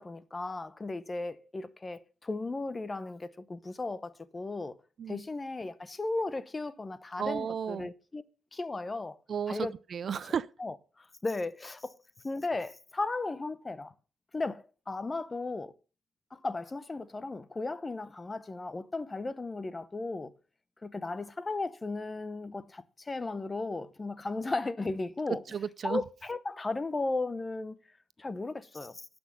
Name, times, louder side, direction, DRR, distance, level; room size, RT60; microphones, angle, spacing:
voice 1, 0.0-4.8 5.1-8.2 8.5-9.2 9.5-9.7 10.6-10.8 11.2-12.0 12.2-13.9 14.3-15.7 16.3-20.3 20.8-25.4 25.8-27.8 28.2-29.1, left 3 dB, 25° left, 0.9 m, -35 dB
voice 2, 7.2-7.9 9.3-10.5 25.5-26.0, right 7 dB, 50° right, 0.5 m, -33 dB
11.5 x 6.2 x 7.3 m
cardioid pair, 90°, 0 cm